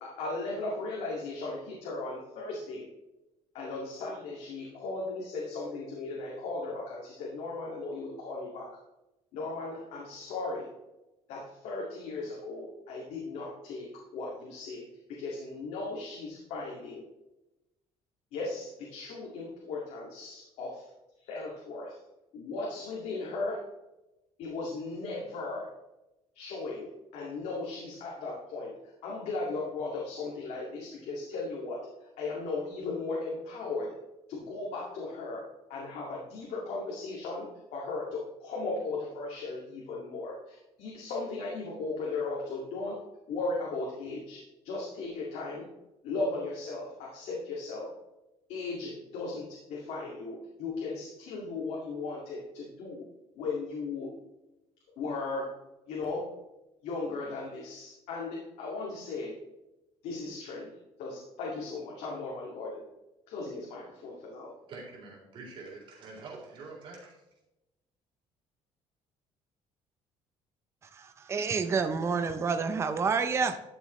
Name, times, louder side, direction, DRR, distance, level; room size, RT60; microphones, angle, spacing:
voice 1, 0.0-2.9 3.5-8.7 9.3-10.7 11.3-17.0 18.3-20.9 21.2-21.9 22.3-23.6 24.4-25.7 26.3-28.7 29.0-31.8 32.2-33.9 34.3-35.4 35.7-43.0 43.3-45.7 46.0-47.9 48.5-53.1 53.4-54.1 55.0-55.5 55.9-56.3 56.8-59.4 60.0-60.7 61.0-62.9 63.3-64.5, left 3 dB, 75° left, -3 dB, 2.2 m, -37 dB
voice 2, 64.7-67.2, right 3 dB, 45° right, -3 dB, 3.8 m, -45 dB
voice 3, 70.9-73.6, right 5 dB, 25° right, 9 dB, 0.6 m, -29 dB
12.5 x 6.9 x 3.2 m, 0.96 s
cardioid pair, 170°, 12 cm